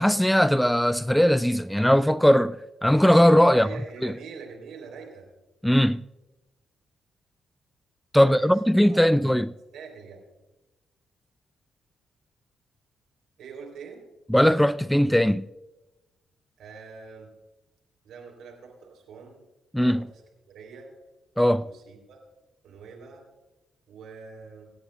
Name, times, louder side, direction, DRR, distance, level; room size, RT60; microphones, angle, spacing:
voice 1, 0.0-3.7 4.0-4.1 5.6-6.0 8.1-9.5 14.3-15.5 19.7-20.1 21.4-21.7, equal, 5° left, 0.3 m, -19 dB
voice 2, 3.5-5.3 8.2-8.5 8.8-9.4 9.7-10.2 13.4-14.0 16.6-17.3 18.0-19.4 19.8-20.2 20.5-20.9 21.6-22.2 22.6-23.2 23.9-24.7, right 5 dB, 65° right, 3.4 m, -43 dB
26.0 x 9.3 x 2.3 m
hypercardioid pair, 40°, 0 cm